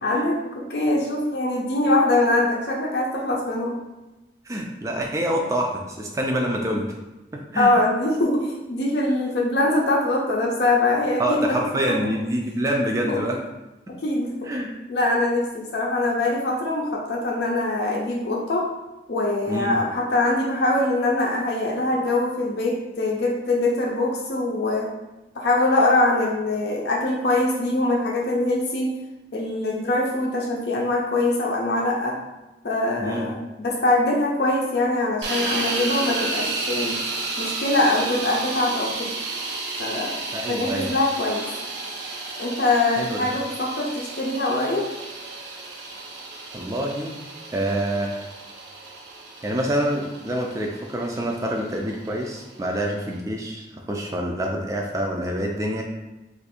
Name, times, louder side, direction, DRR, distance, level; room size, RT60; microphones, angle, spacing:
voice 1, 0.0-3.8 7.6-11.6 11.9-12.0 13.1-13.2 14.0-14.5 14.9-18.7 19.1-24.9 25.3-28.9 29.3-32.2 32.6-37.0 37.4-39.1 39.8-40.2 40.5-41.5 42.4-44.9, left 2 dB, 75° left, -2 dB, 0.5 m, -23 dB
voice 2, 4.5-6.9 7.3-7.7 11.2-13.4 13.9-14.0 14.5-14.7 19.5-19.7 33.0-33.3 40.3-40.9 43.0-43.2 46.5-47.2 47.5-48.2 49.4-55.8, equal, 20° right, 0 dB, 0.3 m, -26 dB
sound 1, 35.2-53.2, right 3 dB, 85° right, 0.6 m, -32 dB
2.6 x 2.4 x 4.1 m, 1.0 s
head